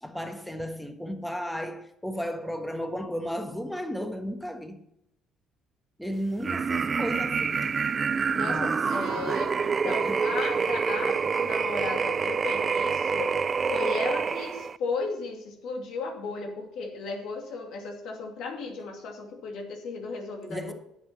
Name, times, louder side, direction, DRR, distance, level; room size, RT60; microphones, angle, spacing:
voice 1, 0.0-4.8 6.0-7.7 8.3-8.8 9.1-9.2 9.8-10.2 20.5-20.7, equal, 5° left, 1.4 m, -34 dB
sound 1, 6.4-14.8, right 5 dB, 35° right, 0.4 m, -27 dB
voice 2, 8.3-13.3 13.6-20.7, left 4 dB, 70° left, 2.5 m, -35 dB
10.5 x 7.2 x 5.8 m
supercardioid pair, 85°, 0 cm